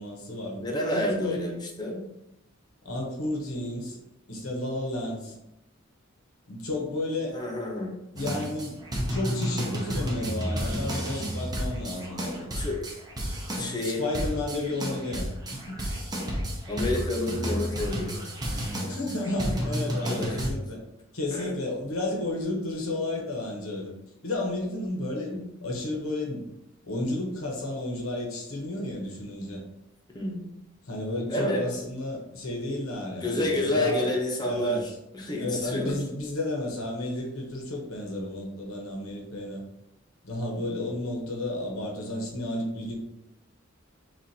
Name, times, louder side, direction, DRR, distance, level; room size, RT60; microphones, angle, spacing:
voice 1, 0.0-1.4 2.8-4.0 4.3-5.4 6.5-7.4 8.1-8.8 9.1-12.5 13.6-15.8 18.9-20.8 21.1-23.9 24.2-25.3 25.6-26.5 26.8-29.6 30.9-34.1 34.4-34.9 35.4-39.6 40.2-42.9, left 2 dB, 90° left, -1 dB, 1.1 m, -32 dB
voice 2, 0.6-2.0 7.3-8.0 12.6-12.8 13.6-14.0 16.7-18.2 20.1-20.3 21.3-21.5 25.3-25.5 30.1-30.5 31.3-31.6 33.2-35.9 40.5-40.7, left 1 dB, 20° left, -1 dB, 0.8 m, -29 dB
sound 1, 8.2-20.5, equal, 20° right, 0.7 m, -31 dB
6.2 x 2.5 x 2.8 m, 0.87 s
head